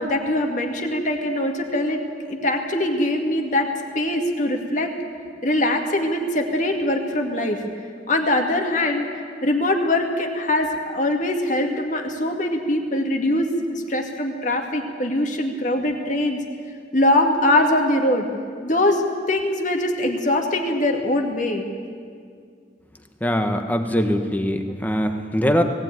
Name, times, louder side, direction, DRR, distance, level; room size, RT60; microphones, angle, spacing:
voice 1, 0.0-2.0 2.3-3.7 3.9-5.0 5.4-7.6 8.1-9.1 9.4-16.4 16.9-18.3 18.6-19.0 19.3-21.6, left 1 dB, 45° left, 3 dB, 2.1 m, -22 dB
voice 2, 23.2-25.6, equal, 10° left, 6 dB, 1.3 m, -22 dB
19.0 x 16.0 x 9.4 m, 2.1 s
head